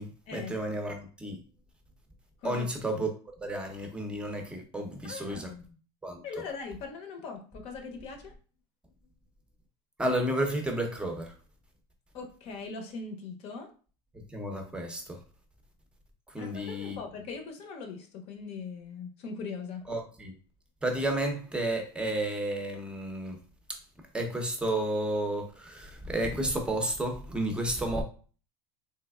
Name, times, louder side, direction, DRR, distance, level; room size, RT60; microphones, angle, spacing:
voice 1, 0.0-1.4 2.4-3.1 3.4-5.5 6.0-6.2 10.0-11.3 14.3-15.2 16.3-17.0 19.9-20.3 20.8-23.4 23.7-23.8 24.1-28.0, right 1 dB, 5° right, 0.6 m, -32 dB
voice 2, 2.4-3.0 5.0-5.6 6.2-8.3 12.1-13.7 16.4-19.8, left 4 dB, 50° left, 0.7 m, -40 dB
3.3 x 3.1 x 2.3 m
supercardioid pair, 135°, 14 cm